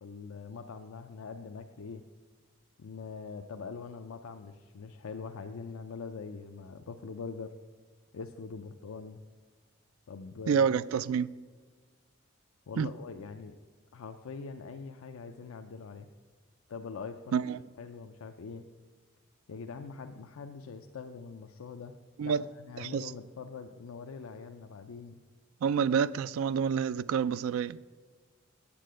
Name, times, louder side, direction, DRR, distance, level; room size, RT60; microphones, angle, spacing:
voice 1, 0.0-2.0 2.8-7.5 8.1-9.2 10.1-10.7 12.7-13.6 13.9-16.1 16.7-17.4 17.8-18.7 19.5-22.0 22.2-25.2, left 5 dB, 80° left, 0.5 m, -43 dB
voice 2, 10.5-11.3 12.8-12.9 17.3-17.6 22.2-22.4 22.8-23.1 25.6-28.0, right 7 dB, 80° right, 0.3 m, -28 dB
8.5 x 7.5 x 7.6 m
head